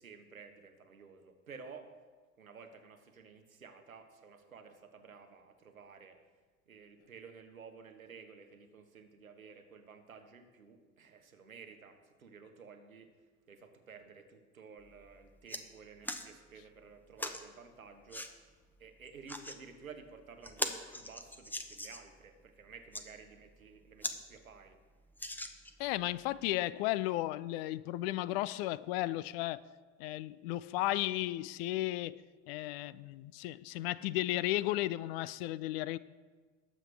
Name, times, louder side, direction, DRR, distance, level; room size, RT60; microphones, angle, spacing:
voice 1, 0.0-1.9 2.4-6.2 6.7-13.1 13.5-18.3 18.8-24.8, right 5 dB, 80° right, 1.2 m, -53 dB
sound 1, 14.8-14.9 15.2-15.6 16.0-16.3 17.2-17.4 18.1-18.3 19.1-19.6 20.0-20.1 20.4-22.1 22.7-23.0 23.6-23.7 24.0-24.2 24.5-24.6 25.2-25.9 26.5-26.6, left 1 dB, 5° left, 0.9 m, -40 dB
voice 2, 25.8-29.6 30.0-32.2 32.5-36.0, left 16 dB, 50° left, 0.5 m, -34 dB
19.5 x 7.5 x 3.4 m
figure-of-eight pair, 65°, 41 cm